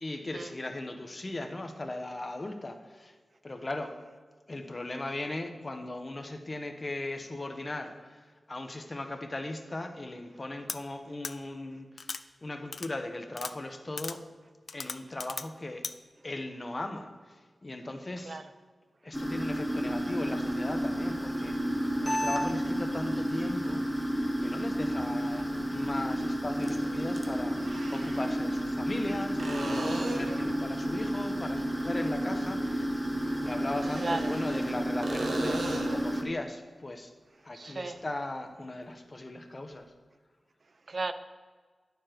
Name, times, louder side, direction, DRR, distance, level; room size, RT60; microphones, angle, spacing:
voice 1, 0.0-3.1 3.4-3.9 4.5-8.2 8.5-12.1 12.4-14.2 14.7-15.8 16.2-18.4 19.0-21.7 22.0-23.8 24.4-25.4 25.7-33.0 33.4-37.1 37.4-39.9, left 2 dB, 35° left, 6 dB, 1.1 m, -38 dB
sound 1, 10.7-10.8 11.2-11.3 12.0-12.2 12.7-12.9 13.3-13.5 14.0-14.2 14.7-15.5 15.8-15.9, left 4 dB, 70° left, 0.4 m, -37 dB
sound 2, 19.1-36.2, equal, ahead, 1.2 m, -31 dB
sound 3, 27.5-28.3 29.4-30.5 33.7-34.7 35.0-36.1 39.7-39.8, right 2 dB, 90° right, 1.2 m, -37 dB
voice 2, 37.5-38.0 40.9-41.1, right 3 dB, 55° right, 11 dB, 0.6 m, -34 dB
9.4 x 6.9 x 4.6 m, 1.5 s
wide cardioid pair, 65°, 0 cm